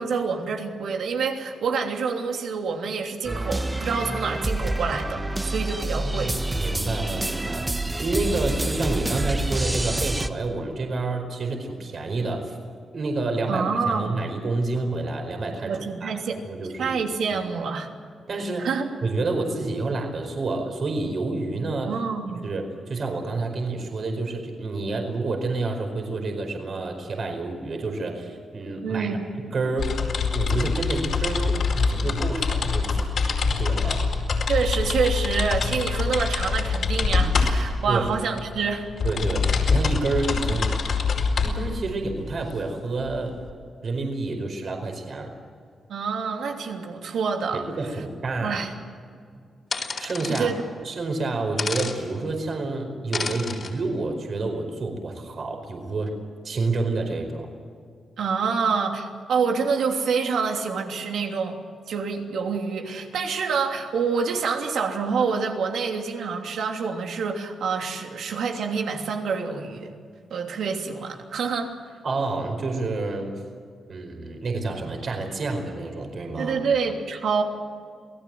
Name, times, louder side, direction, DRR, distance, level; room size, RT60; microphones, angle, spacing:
voice 1, 0.0-6.4 13.5-14.2 15.6-16.4 16.8-17.9 18.6-19.0 21.8-22.5 28.8-29.3 34.5-38.9 45.9-47.6 48.4-48.7 50.3-50.6 58.2-61.6 61.9-69.9 70.3-71.7 76.4-77.4, right 5 dB, 80° right, 3 dB, 3.0 m, -27 dB
sound 1, 3.2-10.3, right 1 dB, 15° right, 1.3 m, -27 dB
voice 2, 6.0-7.7 8.0-12.6 12.9-16.2 16.5-17.0 17.3-17.4 18.3-18.7 19.0-21.9 22.4-29.1 29.5-30.0 30.3-33.0 33.4-34.1 37.9-38.0 39.0-40.7 41.4-43.3 43.8-45.3 47.5-48.6 50.0-50.5 50.8-56.1 56.4-57.5 72.0-73.3 73.9-76.6, right 3 dB, 55° right, 4 dB, 4.9 m, -29 dB
sound 2, 29.8-43.5, left 4 dB, 65° left, 4.8 m, -25 dB
sound 3, 49.7-50.5 51.6-52.0 53.1-53.7, left 4 dB, 50° left, 3.9 m, -30 dB
28.0 x 18.5 x 7.8 m, 2.1 s
cardioid pair, 85°, 0 cm